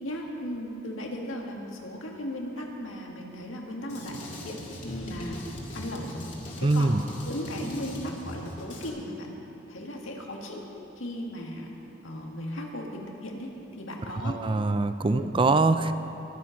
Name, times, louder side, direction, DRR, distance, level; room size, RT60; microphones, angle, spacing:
voice 1, 0.0-4.6 4.8-5.5 5.7-6.3 6.6-6.9 7.2-9.4 9.7-10.6 11.0-11.7 12.0-13.5 13.8-14.4 15.1-15.4, left 1 dB, 75° left, 0 dB, 2.1 m, -36 dB
Drum kit, 3.9-8.9, left 1 dB, 40° left, 2.6 m, -39 dB
voice 2, 6.6-7.0 14.2-15.9, right 3 dB, 25° right, 11 dB, 0.4 m, -23 dB
24.0 x 8.9 x 5.3 m, 2.9 s
head